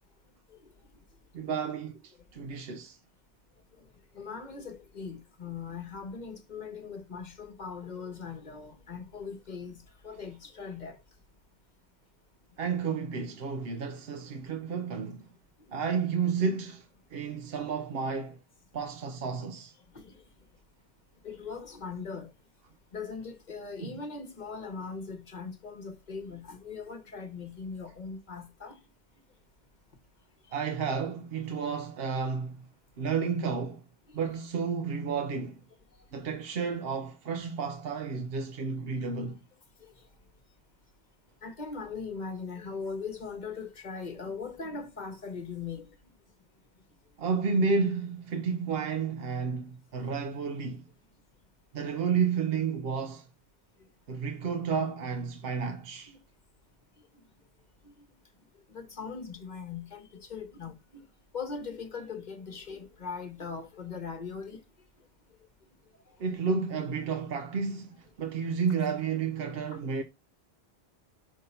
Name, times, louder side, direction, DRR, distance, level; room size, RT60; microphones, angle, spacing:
voice 1, 1.3-3.0 12.6-15.3 15.7-18.4 18.7-19.7 23.8-23.9 30.5-32.6 33.0-33.8 34.1-35.6 36.1-39.4 47.2-50.8 51.7-53.3 54.1-56.1 66.2-70.0, right 5 dB, 70° right, 0.9 m, -31 dB
voice 2, 4.1-11.0 15.7-16.0 19.9-20.2 21.2-22.3 22.9-28.8 34.1-34.2 36.1-36.3 39.8-40.0 41.4-45.9 56.1-56.2 57.8-58.0 58.7-61.0 61.3-64.6 66.1-66.2 69.7-69.8, left 5 dB, 45° left, 1.1 m, -40 dB
5.5 x 3.5 x 5.5 m
omnidirectional pair, 1.1 m